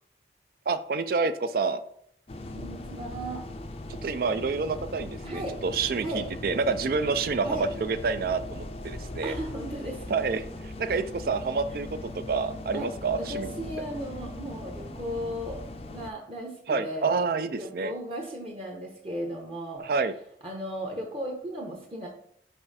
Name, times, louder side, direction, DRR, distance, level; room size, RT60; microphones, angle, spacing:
voice 1, 0.7-1.8 4.0-9.3 10.1-13.5 16.7-17.9 19.8-20.1, right 4 dB, 55° right, 12 dB, 0.4 m, -28 dB
sound 1, 2.3-16.1, left 1 dB, 30° left, 0.5 m, -39 dB
voice 2, 2.5-3.4 5.2-5.6 6.0-6.2 7.4-7.7 9.2-10.0 12.7-12.9 13.2-15.6 15.9-17.2 17.5-19.8 20.4-22.1, equal, 30° right, -1 dB, 1.0 m, -36 dB
5.5 x 4.7 x 4.1 m, 0.69 s
head